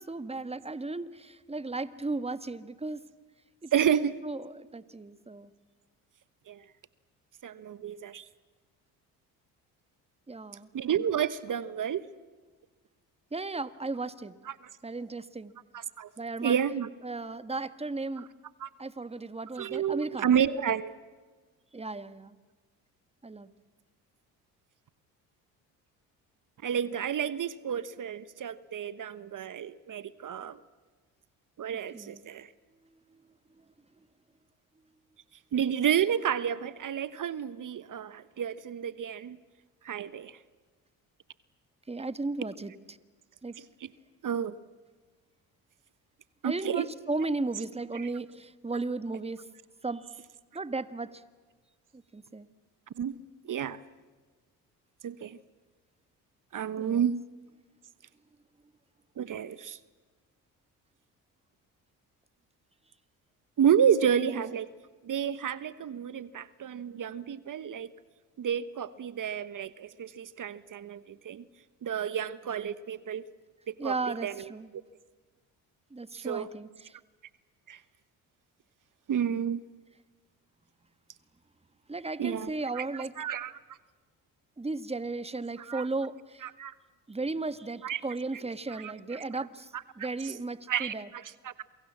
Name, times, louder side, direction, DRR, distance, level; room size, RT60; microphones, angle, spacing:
voice 1, 0.0-3.0 3.6-5.5 10.3-10.7 13.3-14.3 14.8-15.5 16.2-16.6 17.0-18.3 18.8-20.3 21.7-22.3 23.2-23.5 31.9-32.3 33.1-33.2 33.6-33.7 41.9-43.0 43.4-43.6 46.4-49.5 49.8-50.2 50.5-51.2 51.9-52.5 56.8-57.1 64.2-64.5 73.8-74.7 75.9-77.0 81.9-83.1 84.6-86.5 87.1-91.1, right 3 dB, 15° right, 13 dB, 1.5 m, -35 dB
voice 2, 3.7-4.1 6.5-6.6 7.4-8.3 10.7-12.1 15.7-16.1 16.4-16.9 18.6-18.7 19.6-20.9 26.6-30.6 31.6-32.5 35.5-39.4 39.8-40.4 43.8-43.9 44.2-44.6 46.4-46.9 47.9-48.1 53.0-53.1 53.4-53.8 55.0-55.4 56.5-57.2 59.2-59.8 63.6-64.7 65.0-67.9 68.4-71.4 71.8-73.2 73.7-73.9 74.2-74.3 76.1-76.5 77.7-77.8 79.1-79.6 82.2-83.5 85.7-85.9 86.4-86.7 87.8-88.0 88.8-88.9 90.0-90.3 90.7-91.6, right 8 dB, 45° right, 16 dB, 1.2 m, -30 dB
28.5 x 23.5 x 7.5 m, 1.4 s
hypercardioid pair, 60°, 42 cm